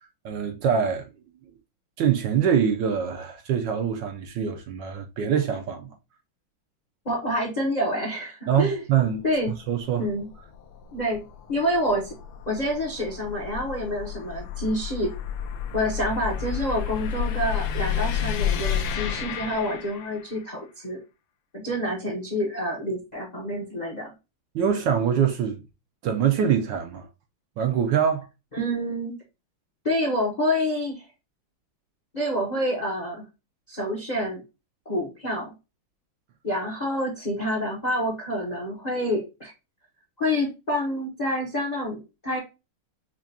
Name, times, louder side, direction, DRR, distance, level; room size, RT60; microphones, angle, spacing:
voice 1, 0.2-1.1 2.0-5.9 8.5-9.2 9.7-10.1 24.5-25.6 26.0-27.1 27.6-28.3, right 8 dB, 75° right, 1.1 m, -24 dB
voice 2, 7.0-8.8 9.2-9.5 10.0-10.3 10.9-11.2 11.5-12.1 12.5-15.1 15.7-21.0 21.5-24.1 28.5-29.1 29.8-31.0 32.1-33.2 33.7-34.4 34.9-35.5 36.4-39.5 40.2-42.4, equal, 45° left, 0.5 m, -27 dB
sound 1, 9.1-20.4, left 8 dB, 90° left, 1.6 m, -31 dB
6.0 x 2.2 x 2.7 m
omnidirectional pair, 2.3 m